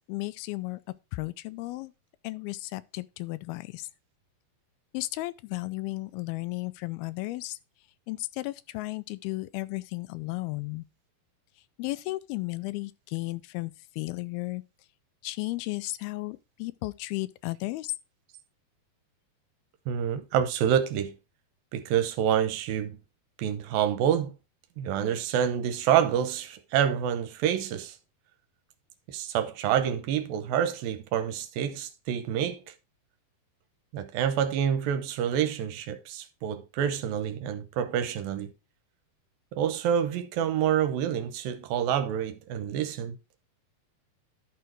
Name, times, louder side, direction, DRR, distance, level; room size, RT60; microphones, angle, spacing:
voice 1, 0.1-0.8 1.1-1.9 2.2-3.9 4.9-7.6 8.1-10.8 11.8-14.6 15.2-17.9, left 20 dB, 90° left, 2.5 m, -34 dB
voice 2, 19.9-21.1 21.7-23.0 23.4-24.3 24.8-28.0 29.1-32.7 33.9-38.5 39.5-43.2, right 9 dB, 80° right, 2.6 m, -27 dB
11.5 x 4.7 x 4.5 m
omnidirectional pair, 4.3 m